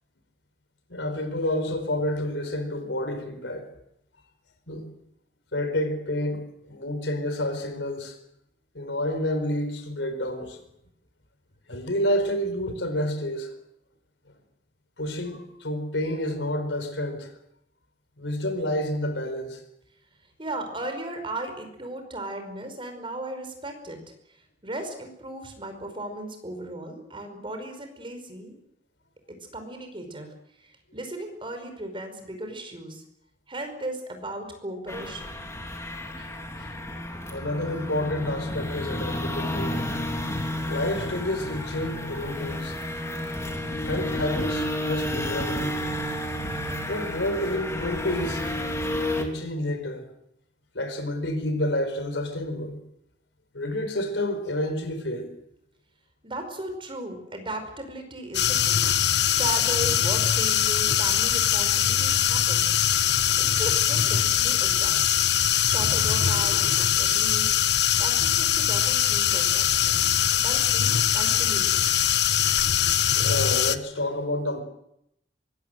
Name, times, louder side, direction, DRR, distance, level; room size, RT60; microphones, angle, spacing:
voice 1, 0.9-3.7 4.7-4.9 5.5-8.2 8.7-10.6 11.7-13.5 15.0-17.3 18.2-19.6 36.2-36.8 37.3-39.8 40.7-42.8 43.9-45.8 46.9-48.5 49.2-50.0 50.7-52.8 53.5-55.3 59.1-59.2 64.0-64.1 73.1-74.6, left 1 dB, 85° left, 4.5 m, -29 dB
voice 2, 20.4-24.4 24.6-28.5 29.5-30.3 30.6-33.0 33.5-35.4 56.2-58.9 59.3-62.7 63.4-65.1 65.6-67.6 68.0-70.1 70.4-71.8, right 1 dB, 30° right, 5.3 m, -36 dB
sound 1, 34.9-49.2, left 1 dB, 15° left, 3.4 m, -31 dB
sound 2, 58.3-73.8, left 10 dB, 65° left, 1.1 m, -22 dB
24.0 x 21.5 x 7.8 m
head